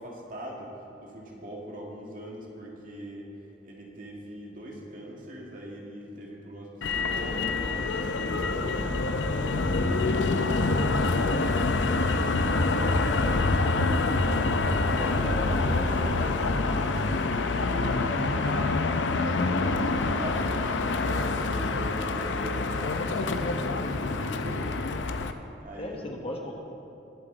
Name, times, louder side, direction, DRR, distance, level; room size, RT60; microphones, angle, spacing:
voice 1, 0.0-3.3 3.6-11.5 12.0-13.3 14.3-18.7 19.2-25.2 25.6-26.1, right 1 dB, 45° right, -2 dB, 2.1 m, -40 dB
Motor vehicle (road), 6.8-25.3, left 3 dB, 80° left, 0.6 m, -26 dB
voice 2, 6.9-7.9 8.1-8.3 14.5-15.5 25.8-26.6, left 1 dB, 30° left, 0 dB, 1.2 m, -39 dB
21.0 x 7.5 x 4.0 m, 2.8 s
head